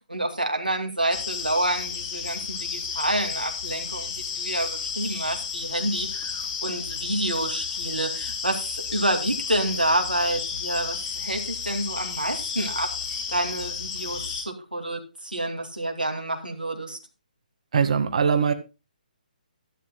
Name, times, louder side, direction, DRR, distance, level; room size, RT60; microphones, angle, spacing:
voice 1, 0.1-17.0, right 1 dB, 85° right, 2 dB, 2.5 m, -28 dB
sound 1, 1.1-14.4, left 6 dB, 25° left, 3.3 m, -32 dB
voice 2, 17.7-18.5, right 6 dB, 50° right, 9 dB, 1.8 m, -21 dB
13.0 x 12.0 x 2.3 m, 0.28 s
figure-of-eight pair, 140°, 5 cm